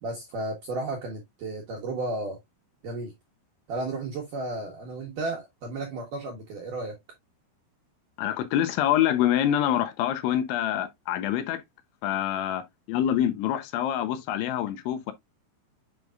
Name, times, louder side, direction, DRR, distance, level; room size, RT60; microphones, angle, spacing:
voice 1, 0.0-2.4 2.8-3.1 3.7-7.0, right 2 dB, 75° right, 1.9 m, -33 dB
voice 2, 8.2-11.6 12.0-15.1, left 11 dB, 80° left, 3.1 m, -26 dB
7.9 x 5.2 x 2.4 m
omnidirectional pair, 5.5 m